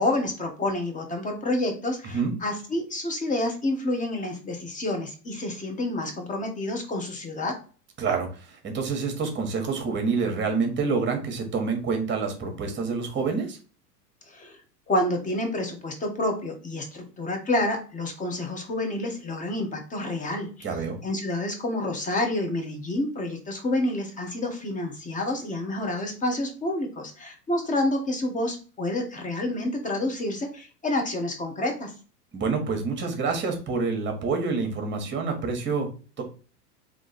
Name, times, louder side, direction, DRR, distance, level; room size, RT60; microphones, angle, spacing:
voice 1, 0.0-7.6 14.3-14.6 14.9-20.5 21.0-31.9, left 1 dB, 15° left, 3 dB, 1.1 m, -28 dB
voice 2, 8.0-13.6 20.6-21.0 32.3-35.9 36.2-36.3, right 4 dB, 25° right, 4 dB, 1.4 m, -27 dB
3.7 x 3.0 x 4.1 m, 0.37 s
hypercardioid pair, 100°, 48 cm